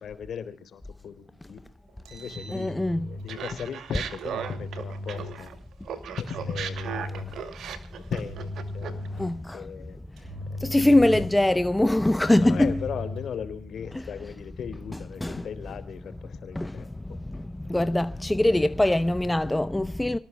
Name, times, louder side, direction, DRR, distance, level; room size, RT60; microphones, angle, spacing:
voice 1, 0.0-1.6 2.1-2.7 3.0-5.5 6.2-7.4 8.1-8.5 8.7-10.0 12.4-16.9, left 7 dB, 60° left, 3.3 m, -37 dB
Engine, 1.9-3.4 4.2-5.4 6.2-7.5 8.2-9.5 10.2-11.5 12.2-13.4, left 2 dB, 85° right, 7.9 m, -37 dB
voice 2, 2.5-3.1 9.1-9.7 10.6-12.8 13.9-14.0 15.2-15.4 16.5-16.8 17.3-20.2, left 1 dB, 10° left, 0.7 m, -23 dB
Laughter, 3.3-5.6 5.9-9.1, right 8 dB, 70° right, 2.4 m, -36 dB
28.5 x 19.0 x 2.2 m
cardioid pair, 90°, 0 cm